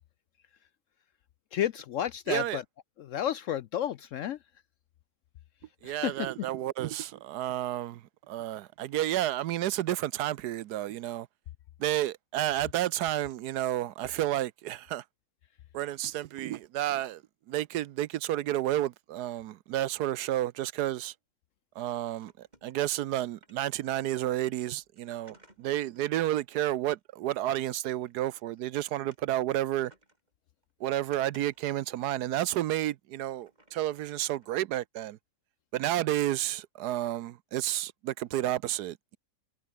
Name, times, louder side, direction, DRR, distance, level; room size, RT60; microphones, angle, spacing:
voice 1, 1.5-2.6 3.1-4.4 5.8-6.1, left 10 dB, 70° left, 0.7 m, -31 dB
voice 2, 2.3-2.6 5.8-11.3 11.8-15.0 15.7-17.2 17.5-21.1 21.7-29.9 30.8-35.2 35.7-39.2, right 13 dB, 75° right, 1.2 m, -31 dB
sound 1, 22.0-23.9 24.2-27.3 27.7-29.5 29.8-30.3 30.6-32.8 33.2-34.5, right 1 dB, 25° right, 5.1 m, -62 dB
omnidirectional pair, 1.8 m